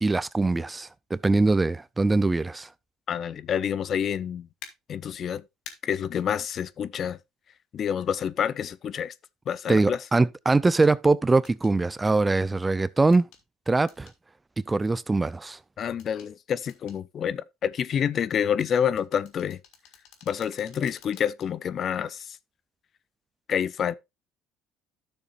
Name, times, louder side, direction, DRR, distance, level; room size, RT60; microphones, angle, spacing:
voice 1, 0.0-2.7 9.7-13.3 13.7-14.1 14.7-15.6, right 3 dB, 15° right, 0.4 m, -22 dB
voice 2, 3.1-4.5 4.9-5.4 5.8-7.2 7.7-9.1 9.5-10.0 15.8-19.6 20.3-22.4 23.5-23.9, left 8 dB, 50° left, 0.5 m, -28 dB
sound 1, 4.6-4.7 5.6-5.8 7.8-7.9 10.7-10.9 11.4-11.7 13.1-13.4 13.9-14.2 16.0-16.3 16.7-17.0 18.6-21.5 21.9-22.0, left 8 dB, 70° left, 1.8 m, -48 dB
12.5 x 6.7 x 2.5 m
supercardioid pair, 90°, 0 cm